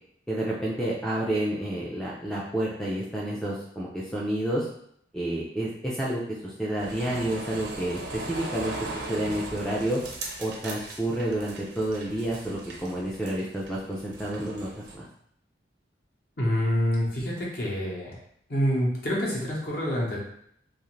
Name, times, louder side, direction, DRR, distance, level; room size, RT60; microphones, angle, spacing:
voice 1, 0.3-4.7 5.1-10.0 10.4-14.7 14.9-15.1, right 1 dB, 5° left, -5 dB, 0.3 m, -30 dB
sound 1, 6.8-15.0, right 2 dB, 70° right, 0.5 m, -39 dB
voice 2, 16.4-18.2 18.5-20.2, equal, 55° left, -4 dB, 0.8 m, -27 dB
2.4 x 2.4 x 3.0 m, 0.68 s
head